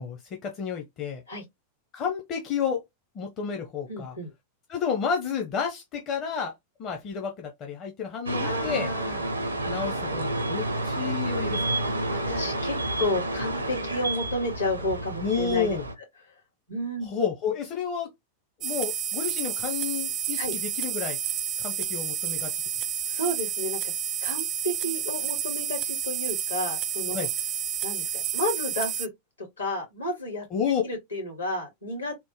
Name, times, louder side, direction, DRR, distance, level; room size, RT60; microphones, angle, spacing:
voice 1, 0.0-1.2 1.9-2.8 3.1-4.1 4.7-6.5 6.8-8.9 9.7-11.9 15.2-15.8 17.0-18.1 18.6-21.2 21.6-22.6 27.1-27.3 30.5-30.8, left 7 dB, 35° left, 0.7 m, -30 dB
voice 2, 3.9-4.3 8.4-9.2 12.1-15.8 16.7-17.1 20.4-20.5 23.0-23.9 24.2-27.2 27.8-29.1 29.6-30.4 30.8-32.1, left 1 dB, 75° left, 2.1 m, -31 dB
sound 1, 8.3-15.9, right 1 dB, 80° right, 0.6 m, -30 dB
sound 2, 18.6-29.1, right 9 dB, 35° right, 0.3 m, -30 dB
3.5 x 2.1 x 3.0 m
figure-of-eight pair, 90°, 0 cm